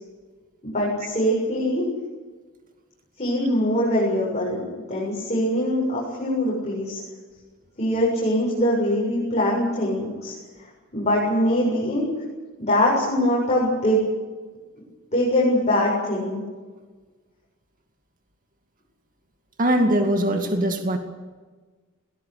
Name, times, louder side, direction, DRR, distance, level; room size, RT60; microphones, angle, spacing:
voice 1, 0.6-1.8 3.2-7.0 7.8-10.3 10.9-12.0 12.6-14.0 15.1-16.4, left 1 dB, 35° left, -6 dB, 7.6 m, -22 dB
voice 2, 19.6-21.0, right 1 dB, 40° right, 4 dB, 2.3 m, -21 dB
22.0 x 19.5 x 8.5 m, 1.4 s
head